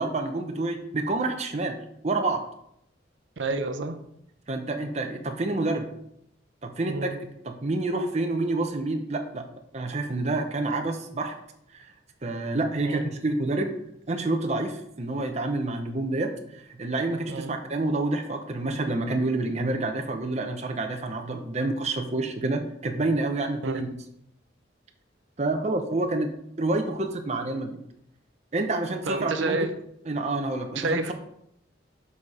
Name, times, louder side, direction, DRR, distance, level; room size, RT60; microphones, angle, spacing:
voice 1, 0.0-1.8 2.0-2.5 4.5-5.9 6.6-7.1 7.4-9.5 9.7-11.3 11.7-11.9 12.2-13.7 14.1-23.9 25.4-26.3 26.6-27.8 28.5-29.7 30.1-31.1, right 2 dB, 35° right, 4 dB, 0.7 m, -28 dB
voice 2, 3.4-4.0 6.9-7.2 12.8-13.0 17.3-17.5 23.6-23.8 29.1-29.7 30.8-31.1, right 3 dB, 75° right, 8 dB, 0.7 m, -29 dB
6.7 x 4.2 x 4.9 m, 0.76 s
head